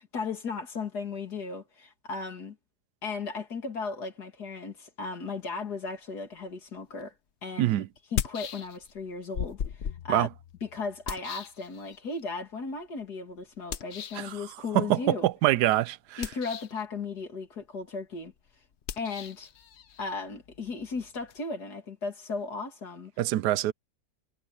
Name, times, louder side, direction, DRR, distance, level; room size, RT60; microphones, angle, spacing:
voice 1, 0.1-2.6 3.0-7.1 7.4-7.7 8.1-10.3 10.6-15.3 16.2-18.3 19.0-19.5 20.0-23.1, left 4 dB, 75° left, 3.1 m, -36 dB
sound 1, 7.0-7.1 8.0-9.0 9.3-12.2 13.7-14.3 16.1-16.9 18.8-21.4, left 8 dB, 55° left, 0.9 m, -37 dB
voice 2, 14.7-16.2 23.2-23.7, right 14 dB, 85° right, 1.2 m, -25 dB
omnidirectional pair, 1.7 m